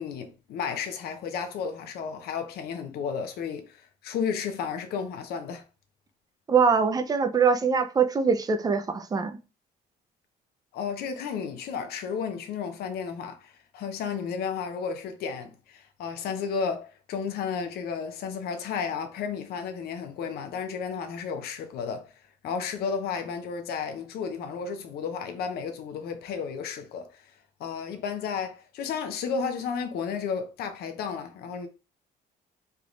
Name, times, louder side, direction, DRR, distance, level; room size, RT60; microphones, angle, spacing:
voice 1, 0.0-5.6 10.7-22.1 22.4-27.2 27.6-31.7, left 6 dB, 70° left, 0.6 m, -33 dB
voice 2, 6.5-9.4, right 5 dB, 20° right, 0.4 m, -23 dB
3.4 x 2.5 x 3.0 m
cardioid pair, 110°, 17 cm